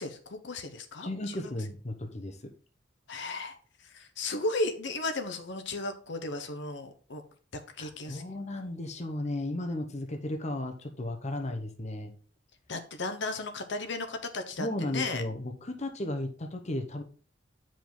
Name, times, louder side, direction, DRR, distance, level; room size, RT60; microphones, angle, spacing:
voice 1, 0.0-1.5 3.1-7.2 7.5-8.2 12.7-15.2, left 2 dB, 65° left, 6 dB, 0.9 m, -35 dB
voice 2, 1.0-2.5 7.8-12.1 14.6-17.0, left 1 dB, 35° left, 5 dB, 0.9 m, -35 dB
8.8 x 5.1 x 3.9 m, 0.41 s
head